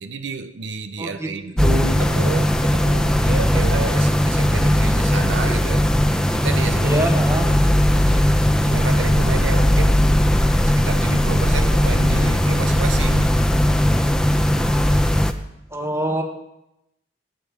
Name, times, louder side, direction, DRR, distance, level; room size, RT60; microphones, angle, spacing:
voice 1, 0.0-5.9 6.3-7.0 7.3-8.3 8.6-10.0 10.6-13.4, right 4 dB, 80° right, 0.7 m, -30 dB
voice 2, 1.0-1.3 1.6-2.0 6.8-7.5 15.7-16.2, right 1 dB, 15° right, 1.5 m, -24 dB
sound 1, 1.6-15.3, equal, 5° left, 0.6 m, -18 dB
17.0 x 8.8 x 5.1 m
head